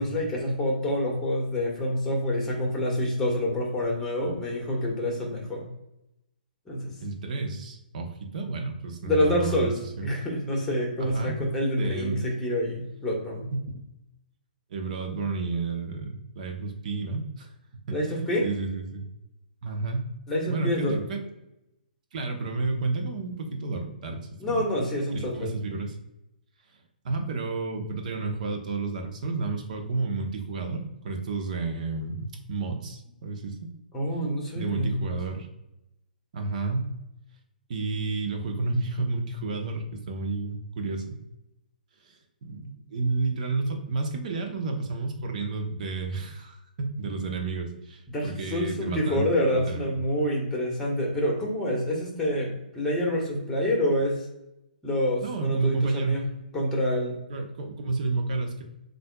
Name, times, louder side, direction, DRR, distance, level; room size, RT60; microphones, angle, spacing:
voice 1, 0.0-5.7 6.7-6.9 9.0-13.5 17.9-18.5 20.3-21.0 24.4-25.6 33.9-35.1 48.1-54.2 54.8-56.3 56.5-57.2, left 1 dB, 10° left, -2 dB, 1.4 m, -27 dB
voice 2, 7.0-9.7 10.0-10.1 11.0-12.2 13.5-13.7 14.7-17.5 17.9-19.1 19.6-20.1 20.5-21.2 22.1-24.6 25.1-26.0 27.0-33.6 34.5-35.5 36.3-36.9 37.7-41.2 42.0-50.0 55.2-56.3 57.3-58.6, right 3 dB, 55° right, 4 dB, 0.9 m, -31 dB
7.5 x 2.7 x 2.3 m, 0.87 s
figure-of-eight pair, 130°, 5 cm